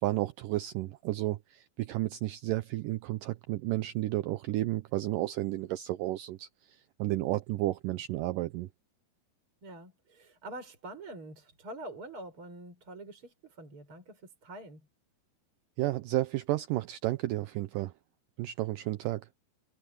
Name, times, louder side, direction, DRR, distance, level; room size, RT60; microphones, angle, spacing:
voice 1, 0.0-8.7 15.8-17.9 18.4-19.3, right 16 dB, 75° right, 2.2 m, -32 dB
voice 2, 9.6-14.9, right 2 dB, 35° right, 7.5 m, -45 dB
omnidirectional pair, 4.1 m